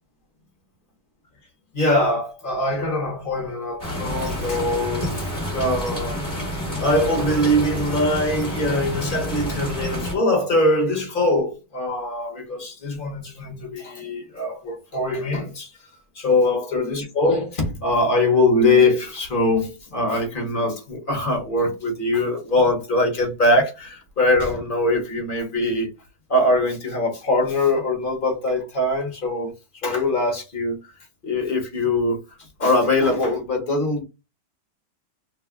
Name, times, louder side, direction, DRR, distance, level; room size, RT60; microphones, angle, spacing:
voice 1, 1.7-6.5 6.8-15.7 16.1-25.9 26.3-29.5 29.8-30.8 31.2-32.2 32.6-34.0, left 2 dB, 35° left, 1.0 m, -22 dB
sound 1, 3.8-10.1, equal, 20° left, 1.3 m, -28 dB
2.9 x 2.4 x 3.5 m
omnidirectional pair, 1.9 m